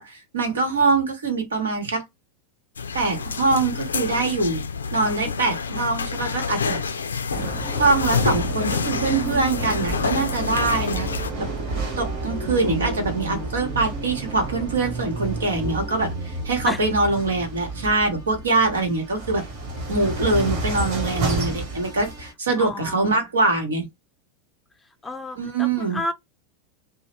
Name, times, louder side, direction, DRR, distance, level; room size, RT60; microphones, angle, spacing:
voice 1, 0.0-2.0 2.9-4.6 4.9-6.8 7.8-11.1 11.4-11.5 12.0-19.4 19.9-23.9 25.4-26.0, right 3 dB, 80° right, 1.1 m, -23 dB
sound 1, 2.8-11.3, left 5 dB, 85° left, 0.3 m, -28 dB
sound 2, 7.3-22.3, right 2 dB, 60° right, 1.2 m, -30 dB
voice 2, 12.4-13.1 16.7-16.8 22.6-23.0 25.0-26.1, left 2 dB, 10° left, 0.5 m, -31 dB
2.9 x 2.1 x 3.0 m
hypercardioid pair, 90°, 0 cm